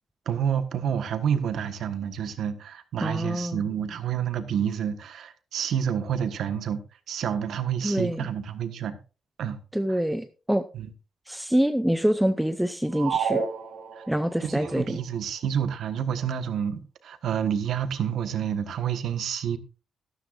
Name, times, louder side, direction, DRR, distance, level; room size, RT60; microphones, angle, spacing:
voice 1, 0.2-6.8 7.1-9.0 9.4-9.6 9.9-10.0 10.7-10.9 13.9-14.0 14.4-19.6, right 8 dB, 60° right, 1.4 m, -29 dB
voice 2, 3.0-3.6 7.8-8.3 9.7-10.6 11.3-13.4 14.1-15.0, equal, 5° right, 0.5 m, -25 dB
sound 1, 12.9-14.4, right 6 dB, 85° right, 3.0 m, -29 dB
14.0 x 13.0 x 2.6 m
cardioid pair, 175°, 0 cm